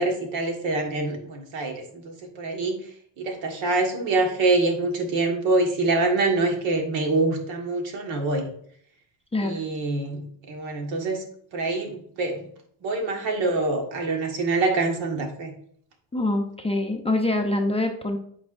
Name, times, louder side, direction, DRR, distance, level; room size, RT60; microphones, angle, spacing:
voice 1, 0.0-2.8 3.2-8.4 9.4-10.2 10.5-11.2 11.5-12.5 12.8-15.5, right 2 dB, 70° right, 3 dB, 1.7 m, -25 dB
voice 2, 16.1-18.2, left 2 dB, 15° left, 2 dB, 0.6 m, -25 dB
8.4 x 4.7 x 2.5 m, 0.63 s
cardioid pair, 120°, 47 cm